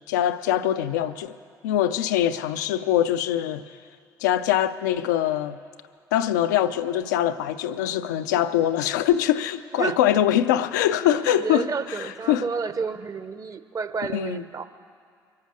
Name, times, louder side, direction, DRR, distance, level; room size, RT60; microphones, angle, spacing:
voice 1, 0.1-1.3 1.6-3.6 4.2-5.6 6.1-12.5 14.1-14.4, left 11 dB, 90° left, 0.5 m, -23 dB
voice 2, 11.3-14.6, right 5 dB, 40° right, 0.9 m, -30 dB
23.5 x 8.4 x 6.3 m
hypercardioid pair, 60°, 9 cm